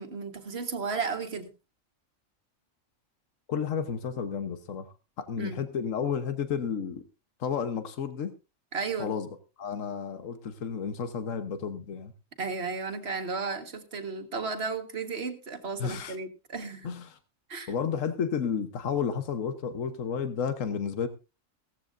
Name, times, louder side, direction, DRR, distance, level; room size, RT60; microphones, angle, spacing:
voice 1, 0.0-1.5 5.4-5.6 8.7-9.1 12.4-16.9 17.5-17.7, right 4 dB, 50° right, 1.8 m, -34 dB
voice 2, 3.5-4.9 5.2-7.0 7.4-8.3 9.0-9.3 9.6-12.1 15.8-16.2 16.8-17.2 17.7-21.1, left 7 dB, 75° left, 1.5 m, -31 dB
16.5 x 14.0 x 2.6 m
omnidirectional pair, 1.4 m